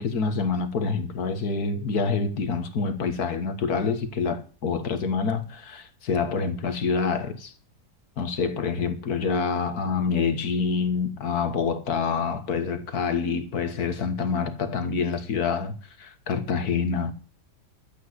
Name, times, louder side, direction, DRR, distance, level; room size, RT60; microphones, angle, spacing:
voice 1, 0.0-7.5 8.2-17.1, left 5 dB, 65° left, 2.0 m, -27 dB
12.0 x 8.7 x 8.1 m
omnidirectional pair, 1.7 m